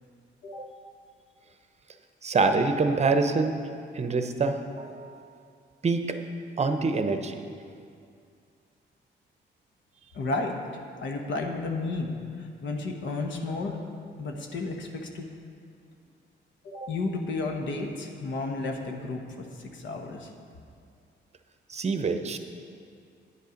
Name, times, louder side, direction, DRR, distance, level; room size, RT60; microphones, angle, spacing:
voice 1, 2.2-3.5 3.9-5.2 5.8-6.2 6.6-7.4 16.8-16.9 21.7-22.4, right 4 dB, 35° right, 7 dB, 0.7 m, -26 dB
voice 2, 10.1-10.6 11.0-13.8 14.2-15.3 16.6-20.3, left 3 dB, 75° left, 2 dB, 1.1 m, -32 dB
9.7 x 8.3 x 5.2 m, 2.3 s
cardioid pair, 110°, 19 cm